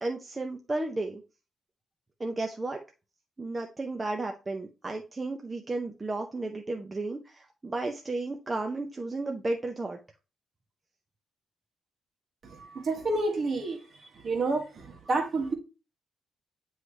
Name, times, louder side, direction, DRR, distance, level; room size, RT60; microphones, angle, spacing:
voice 1, 0.0-1.2 2.2-2.8 3.4-10.0, right 2 dB, 20° right, 0.6 m, -33 dB
voice 2, 12.4-13.8 14.1-15.5, right 2 dB, 40° right, 1.5 m, -29 dB
9.3 x 3.2 x 3.1 m
cardioid pair, 140°, 0 cm